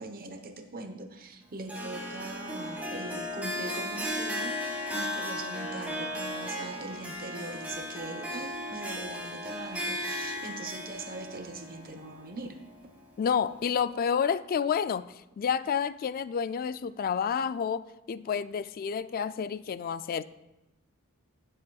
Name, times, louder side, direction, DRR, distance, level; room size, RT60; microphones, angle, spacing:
voice 1, 0.0-4.6 4.9-12.6, right 2 dB, 45° right, 6 dB, 1.0 m, -41 dB
Harp, 1.7-12.9, left 1 dB, 5° right, 1.9 m, -36 dB
voice 2, 13.2-20.2, left 7 dB, 40° left, 15 dB, 0.3 m, -29 dB
17.0 x 7.8 x 2.3 m, 0.96 s
head